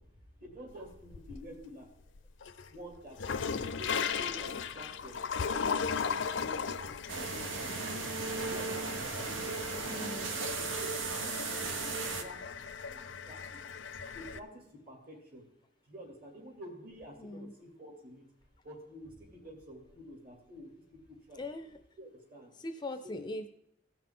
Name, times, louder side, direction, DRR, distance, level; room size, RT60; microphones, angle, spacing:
voice 1, 0.4-1.9 2.7-5.2 5.5-8.1 8.5-9.0 9.2-10.2 10.6-13.6 14.1-15.4 15.8-18.2 18.6-21.4 22.0-22.5 23.0-23.3, equal, 50° right, 1 dB, 2.7 m, -49 dB
sound 1, 0.7-1.6 2.1-14.4, left 6 dB, 75° left, 0.5 m, -37 dB
sound 2, 7.1-12.2, right 4 dB, 85° right, 1.0 m, -36 dB
voice 2, 9.9-10.3 17.2-17.5 21.4-21.8 22.5-23.5, left 1 dB, 20° left, 8 dB, 0.4 m, -40 dB
17.0 x 5.9 x 3.7 m, 0.76 s
head